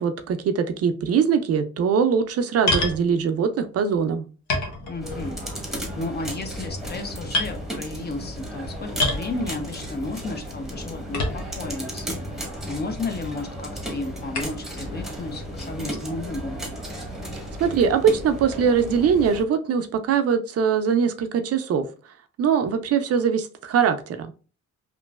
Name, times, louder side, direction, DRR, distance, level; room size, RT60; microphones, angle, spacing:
voice 1, 0.0-4.3 17.6-21.9 22.4-24.3, right 6 dB, 55° right, 8 dB, 0.4 m, -22 dB
sound 1, 2.7-3.0 3.9-4.0 4.5-5.3 5.7-6.1 6.7-7.0 7.3-7.5 9.0-9.3 11.1-11.7 12.4-12.5 14.3-14.6, left 2 dB, 70° left, 0.9 m, -26 dB
voice 2, 4.9-5.4 6.0-16.6, left 2 dB, 35° left, 6 dB, 0.6 m, -33 dB
sound 2, 5.0-19.4, equal, ahead, 0.9 m, -34 dB
3.0 x 2.5 x 2.2 m, 0.36 s
cardioid pair, 90°, 30 cm